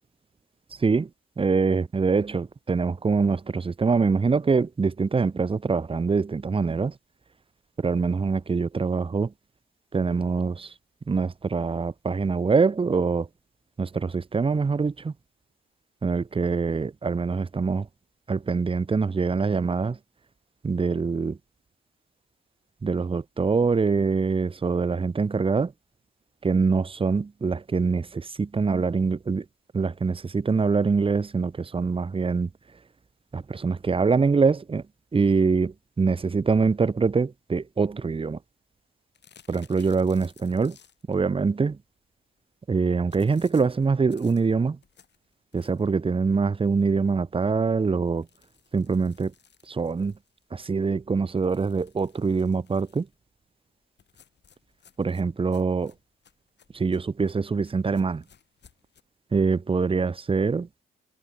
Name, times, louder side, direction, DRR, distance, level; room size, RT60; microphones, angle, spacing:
voice 1, 1.4-6.9 7.8-9.3 9.9-10.7 11.1-13.3 13.8-15.1 16.0-17.9 18.3-20.0 20.6-21.4 22.8-25.7 26.4-29.4 29.7-32.5 33.3-34.8 35.1-38.4 39.5-40.8 41.1-41.8 42.7-44.8 45.5-48.3 48.7-49.3 49.7-50.1 50.5-53.1 55.0-55.9 56.7-58.2 59.3-60.8, right 4 dB, 25° right, 0.9 m, -24 dB
sound 1, 39.1-41.2 43.1-46.0 46.5-46.6 46.9-47.0 47.3-47.4 48.1-50.6 51.4-53.2 54.0-59.0, left 7 dB, 55° left, 4.9 m, -59 dB
cardioid pair, 70°, 21 cm